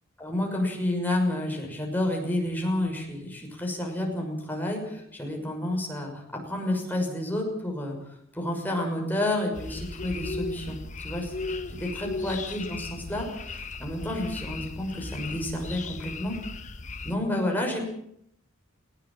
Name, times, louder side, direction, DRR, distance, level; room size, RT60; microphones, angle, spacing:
voice 1, 0.2-8.0 8.3-16.4 17.0-17.9, left 1 dB, 10° left, 1 dB, 6.2 m, -30 dB
sound 1, 9.5-17.2, left 3 dB, 35° left, 1.3 m, -37 dB
20.0 x 17.5 x 8.8 m, 0.73 s
head